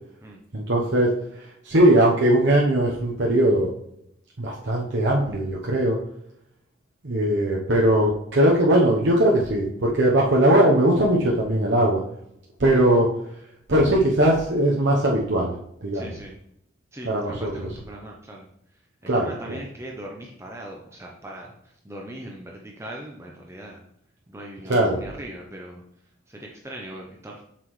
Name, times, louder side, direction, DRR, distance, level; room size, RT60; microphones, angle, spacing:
voice 1, 0.5-1.1 1.6-3.7 4.4-6.0 7.0-12.0 12.6-13.1 13.7-15.5 15.8-16.0 17.0-17.5 19.1-19.6 24.7-25.0, right 1 dB, 65° right, -2 dB, 0.9 m, -20 dB
voice 2, 15.9-16.3 16.9-18.5 19.1-21.5 21.8-23.8 24.3-25.8 26.3-27.4, right 1 dB, 15° right, -1 dB, 0.7 m, -39 dB
7.8 x 6.0 x 3.2 m, 0.74 s
head